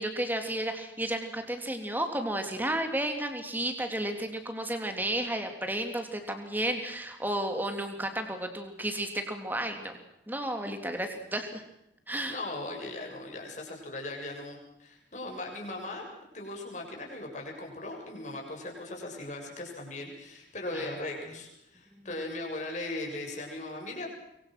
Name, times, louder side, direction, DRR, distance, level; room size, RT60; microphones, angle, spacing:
voice 1, 0.0-9.9 10.3-11.6 12.1-12.4 20.7-20.9, right 1 dB, 10° right, 5 dB, 3.2 m, -32 dB
voice 2, 12.3-16.1 16.3-24.1, left 2 dB, 40° left, 1 dB, 7.2 m, -38 dB
25.0 x 24.5 x 6.2 m, 0.85 s
head